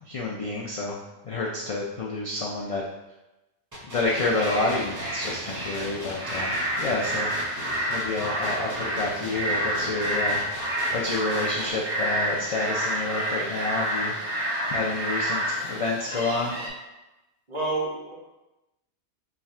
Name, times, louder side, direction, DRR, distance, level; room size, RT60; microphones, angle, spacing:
voice 1, 0.0-1.0 1.2-2.8 3.9-7.3 7.9-10.4 10.9-14.2 14.7-16.7, left 2 dB, 60° left, -3 dB, 0.3 m, -29 dB
sound 1, 3.7-11.7, equal, 25° right, 0.5 m, -39 dB
sound 2, 4.0-16.7, right 1 dB, 85° right, 1.5 m, -29 dB
voice 2, 17.5-18.1, right 2 dB, 45° right, -7 dB, 1.4 m, -28 dB
3.4 x 2.4 x 4.1 m, 1.0 s
omnidirectional pair, 1.2 m